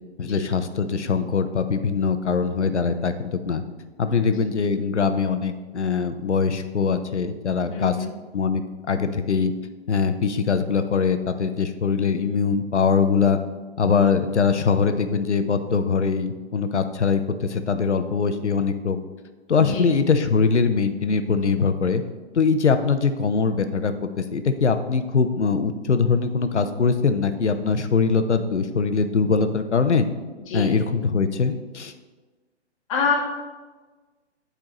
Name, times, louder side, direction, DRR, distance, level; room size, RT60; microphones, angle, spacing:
voice 1, 0.2-3.6 4.0-8.0 8.3-8.6 8.9-9.5 9.9-13.4 13.8-19.0 19.5-22.0 22.3-30.1 30.5-31.9, left 5 dB, 75° left, 9 dB, 0.7 m, -22 dB
voice 2, 7.7-8.1 19.6-19.9 30.4-30.7 32.9-33.1, left 5 dB, 30° left, -3 dB, 1.3 m, -26 dB
9.0 x 4.6 x 3.0 m, 1.3 s
figure-of-eight pair, 135°, 35 cm